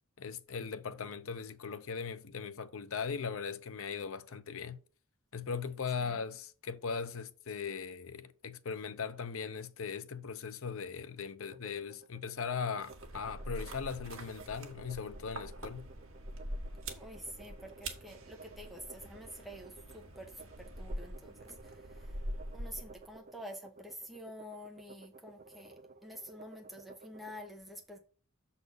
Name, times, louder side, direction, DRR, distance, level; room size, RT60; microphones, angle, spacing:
voice 1, 0.2-4.8 5.3-15.9, left 6 dB, 65° left, 0.7 m, -39 dB
sound 1, 11.4-27.4, right 4 dB, 40° right, 0.5 m, -55 dB
sound 2, 12.8-23.2, right 1 dB, 65° right, 1.6 m, -44 dB
voice 2, 16.9-22.2 22.5-28.0, equal, ahead, 1.1 m, -48 dB
6.8 x 4.2 x 6.7 m
head